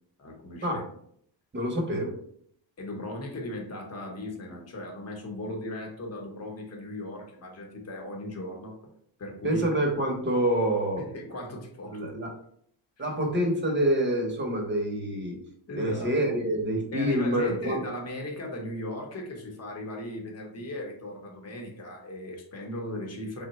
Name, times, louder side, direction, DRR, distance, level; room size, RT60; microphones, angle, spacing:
voice 1, 0.2-0.8 2.8-8.8 9.2-9.6 11.0-12.0 15.7-16.3 16.9-23.5, left 1 dB, 35° left, 1 dB, 0.8 m, -37 dB
voice 2, 1.5-2.1 9.4-11.0 11.9-12.3 13.0-15.4 15.8-17.8, right 1 dB, 25° right, 2 dB, 0.7 m, -26 dB
3.7 x 2.1 x 4.0 m, 0.65 s
wide cardioid pair, 145°, 45 cm